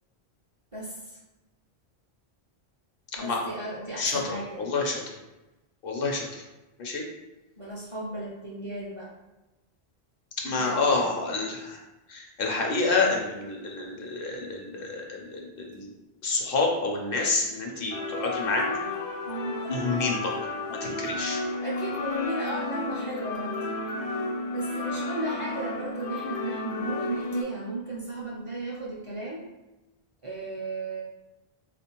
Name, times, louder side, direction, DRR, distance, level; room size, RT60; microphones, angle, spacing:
voice 1, 0.7-1.2 3.2-4.6 7.6-9.1 10.5-11.1 19.3-19.6 21.6-23.6 24.1-24.3 24.5-29.4 30.2-31.0, right 1 dB, 40° right, -5 dB, 0.5 m, -35 dB
voice 2, 4.6-5.0 5.8-6.4 6.8-7.0 10.4-11.8 12.1-15.9 16.2-18.8 19.7-20.4 20.7-21.4, left 3 dB, 65° left, 0 dB, 0.8 m, -28 dB
sound 1, 17.9-27.4, left 2 dB, 90° left, 0.9 m, -32 dB
3.6 x 2.5 x 2.9 m, 1.0 s
omnidirectional pair, 1.1 m